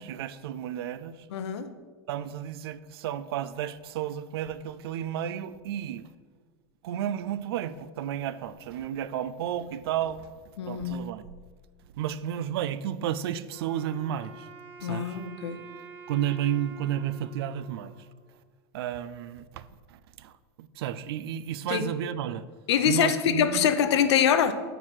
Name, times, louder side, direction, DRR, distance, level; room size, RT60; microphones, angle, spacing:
voice 1, 0.0-1.3 2.1-6.1 6.8-10.3 10.6-11.2 12.0-14.5 14.8-15.2 16.1-17.9 18.7-22.4 22.9-23.7, right 10 dB, 65° right, 0.4 m, -32 dB
voice 2, 1.3-1.7 10.6-11.2 14.8-15.6 21.7-21.9 22.7-24.5, left 8 dB, 90° left, 0.7 m, -24 dB
Wind instrument woodwind instrument, 13.5-18.7, right 4 dB, 15° right, 0.6 m, -48 dB
8.0 x 4.7 x 5.7 m
supercardioid pair, 175°, 14 cm